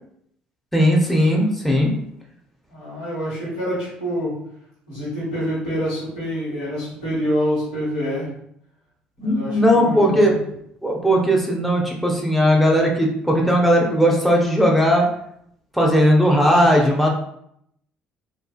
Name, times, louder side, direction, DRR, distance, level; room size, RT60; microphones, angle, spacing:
voice 1, 0.7-1.9 9.2-10.3 10.8-15.1 15.7-17.1, equal, ahead, -1 dB, 0.6 m, -17 dB
voice 2, 2.7-4.4 4.9-8.3 9.2-10.3, equal, 85° left, -9 dB, 1.5 m, -26 dB
2.5 x 2.4 x 2.4 m, 0.72 s
hypercardioid pair, 55°, 4 cm